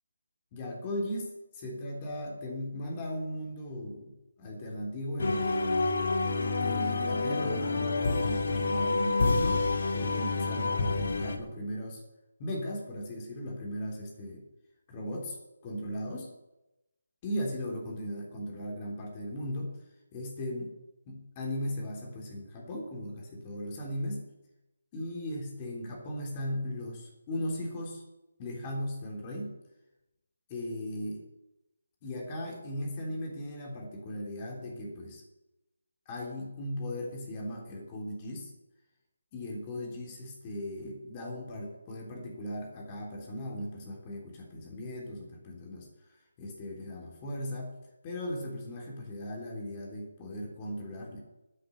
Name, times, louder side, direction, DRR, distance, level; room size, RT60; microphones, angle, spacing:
voice 1, 0.5-5.7 6.6-12.0 12.4-14.4 14.9-15.4 15.6-16.3 17.2-19.8 20.1-20.8 21.0-24.3 24.9-28.0 28.4-29.6 30.5-31.2 32.0-35.2 36.0-38.5 39.3-45.9 46.4-47.7 48.0-51.2, left 1 dB, 25° left, -1 dB, 3.4 m, -37 dB
sound 1, 5.2-11.4, left 3 dB, 60° left, 2.1 m, -28 dB
10.0 x 9.8 x 9.1 m, 0.96 s
figure-of-eight pair, 155°, 0 cm